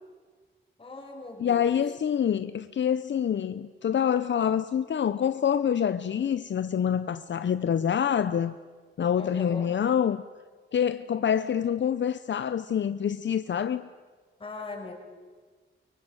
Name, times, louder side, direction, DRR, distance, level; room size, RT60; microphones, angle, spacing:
voice 1, 0.8-1.8 9.2-9.8 14.4-14.9, left 3 dB, 25° left, 5.3 m, -40 dB
voice 2, 1.4-8.6 9.0-10.2 10.7-13.9, left 8 dB, 65° left, 0.7 m, -26 dB
24.0 x 23.5 x 9.0 m
wide cardioid pair, 170°, 21 cm